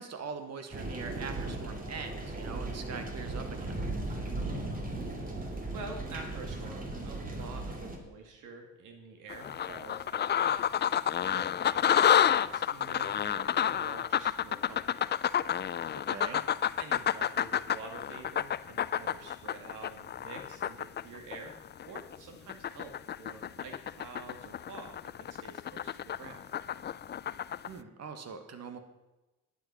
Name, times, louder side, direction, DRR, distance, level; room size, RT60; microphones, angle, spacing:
voice 1, 0.0-3.8 16.1-16.4 27.7-28.8, right 5 dB, 60° right, 8 dB, 1.7 m, -42 dB
sound 1, 0.7-8.0, right 2 dB, 30° right, 2.5 m, -37 dB
voice 2, 4.2-15.1 16.3-16.4 16.8-21.5 21.8-26.4, right 3 dB, 85° right, 4 dB, 2.1 m, -48 dB
sound 2, 9.3-22.2 22.5-27.7, left 9 dB, 35° left, 0.4 m, -30 dB
11.5 x 9.2 x 5.6 m, 1.1 s
cardioid pair, 90°, 30 cm